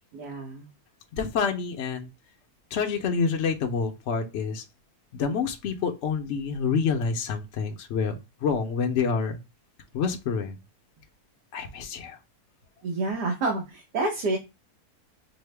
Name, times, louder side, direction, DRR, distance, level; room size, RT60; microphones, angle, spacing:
voice 1, 0.1-0.7 12.8-14.4, right 2 dB, 85° right, 1.5 m, -28 dB
voice 2, 1.1-2.1 2.7-4.6 5.1-8.2 8.4-9.4 9.9-10.6 11.5-12.2, left 5 dB, 60° left, 0.7 m, -27 dB
5.2 x 2.1 x 3.1 m
omnidirectional pair, 1.7 m